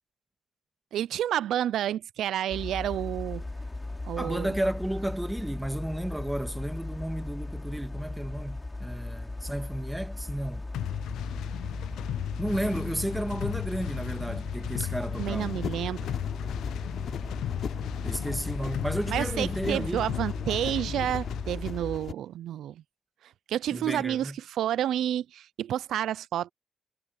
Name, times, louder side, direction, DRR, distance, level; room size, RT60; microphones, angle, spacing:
voice 1, 0.9-3.5 4.0-4.5 14.8-14.9 15.2-16.1 19.1-22.8 23.5-26.5, right 11 dB, 75° right, 0.5 m, -30 dB
sound 1, 2.5-22.0, left 2 dB, 15° left, 3.6 m, -37 dB
voice 2, 4.2-10.7 12.4-15.5 18.0-20.0 23.7-24.4, right 1 dB, 5° right, 2.0 m, -33 dB
sound 2, 10.7-21.5, left 12 dB, 80° left, 0.3 m, -36 dB
sound 3, 15.2-22.1, left 8 dB, 60° left, 3.9 m, -40 dB
cardioid pair, 90°, 0 cm